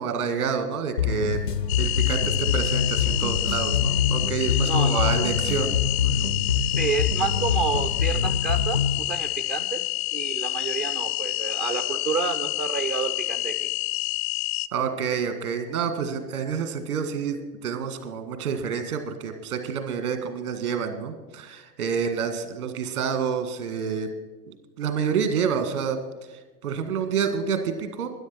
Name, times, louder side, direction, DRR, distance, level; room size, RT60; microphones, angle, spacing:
voice 1, 0.0-1.4 1.8-5.7 6.0-6.3 14.7-24.1 24.5-26.0 26.3-28.1, right 6 dB, 65° right, 8 dB, 1.9 m, -28 dB
sound 1, 1.0-9.0, left 7 dB, 90° left, 1.0 m, -25 dB
sound 2, 1.7-14.7, left 19 dB, 45° left, 0.5 m, -28 dB
voice 2, 4.6-5.3 6.8-9.8 10.1-13.7, right 5 dB, 20° right, 6 dB, 0.4 m, -29 dB
12.5 x 10.5 x 6.0 m, 1.3 s
figure-of-eight pair, 90°, 47 cm